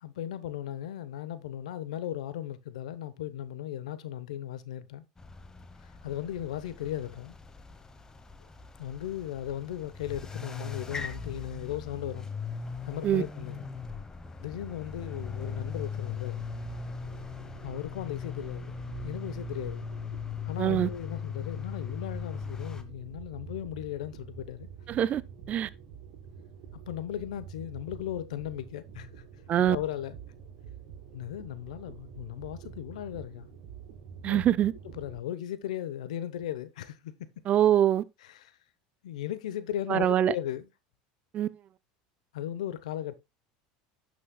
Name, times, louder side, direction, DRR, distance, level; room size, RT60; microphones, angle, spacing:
voice 1, 0.0-5.0 5.8-7.3 8.8-12.3 12.8-13.7 14.4-16.4 17.6-18.8 19.0-19.9 20.5-24.7 26.9-29.2 29.6-30.1 31.1-33.5 34.2-34.4 34.9-37.3 38.3-38.5 39.0-40.7 42.3-43.2, left 11 dB, 90° left, 0.9 m, -37 dB
sound 1, 5.2-22.8, left 5 dB, 15° left, 1.1 m, -39 dB
sound 2, 16.0-35.2, right 7 dB, 65° right, 2.9 m, -47 dB
voice 2, 20.6-20.9 24.9-25.2 25.5-25.7 29.5-29.8 34.2-34.7 37.5-38.0 39.9-40.3 41.3-41.5, right 11 dB, 40° right, 0.5 m, -24 dB
11.5 x 6.4 x 2.3 m
supercardioid pair, 105°, 4 cm